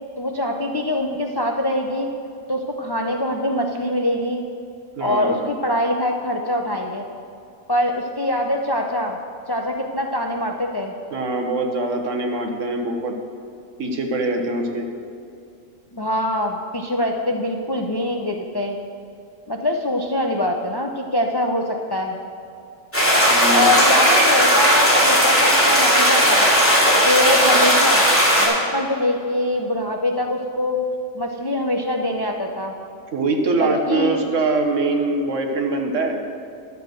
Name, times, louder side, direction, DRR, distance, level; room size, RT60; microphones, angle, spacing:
voice 1, 0.2-2.1 2.5-4.4 5.0-7.0 7.7-9.2 9.5-10.9 15.9-18.8 19.5-22.2 23.5-26.5 27.0-28.0 28.4-30.8 31.1-32.7 33.6-34.2, left 1 dB, 35° left, 2 dB, 0.4 m, -23 dB
voice 2, 5.0-5.4 11.1-13.1 13.8-14.9 23.3-23.7 33.1-36.2, right 2 dB, 70° right, 3 dB, 1.4 m, -23 dB
sound 1, 22.9-28.5, equal, 10° left, 2.7 m, -16 dB
11.0 x 6.9 x 6.4 m, 2.5 s
omnidirectional pair, 1.3 m